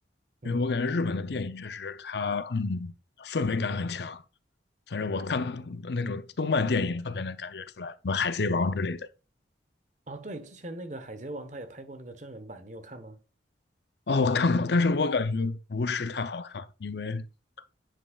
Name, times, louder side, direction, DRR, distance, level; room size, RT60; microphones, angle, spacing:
voice 1, 0.4-2.9 3.2-4.2 4.9-9.1 14.1-17.3 17.6-17.7, left 3 dB, 65° left, 0.6 m, -28 dB
voice 2, 10.1-13.2, right 1 dB, 40° right, 1.1 m, -41 dB
10.0 x 5.4 x 2.4 m
head